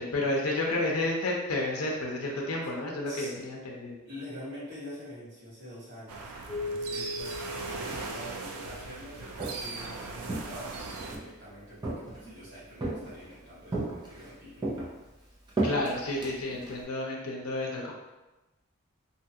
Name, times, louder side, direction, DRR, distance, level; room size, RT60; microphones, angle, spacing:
voice 1, 0.0-4.0 15.6-17.9, left 2 dB, 70° left, -1 dB, 0.6 m, -31 dB
voice 2, 4.0-14.7, equal, 55° right, -10 dB, 1.4 m, -45 dB
sound 1, 6.1-11.2, right 4 dB, 90° right, 0.4 m, -39 dB
Keyboard (musical), 6.5-9.4, left 1 dB, 25° left, 1.1 m, -39 dB
Walk footsteps, 9.1-9.8 10.3-11.3 11.8-12.4 12.8-13.3 13.7-14.3 14.6-16.8, right 2 dB, 20° right, 0.5 m, -34 dB
2.7 x 2.3 x 2.7 m, 1.0 s
head